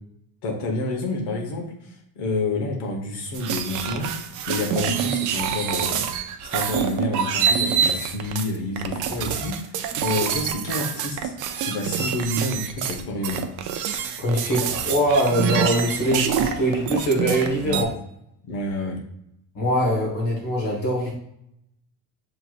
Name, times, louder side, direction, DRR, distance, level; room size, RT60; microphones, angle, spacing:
voice 1, 0.4-1.7 2.2-4.1 4.5-6.0 6.5-9.6 10.0-13.4 17.6-17.8 18.4-19.0, left 2 dB, 75° left, 2 dB, 1.3 m, -28 dB
sound 1, 3.3-17.8, right 8 dB, 50° right, 0.5 m, -26 dB
voice 2, 14.2-17.9 19.5-21.1, equal, 55° left, -3 dB, 1.5 m, -22 dB
6.8 x 3.1 x 2.5 m, 0.77 s
cardioid pair, 175°, 40 cm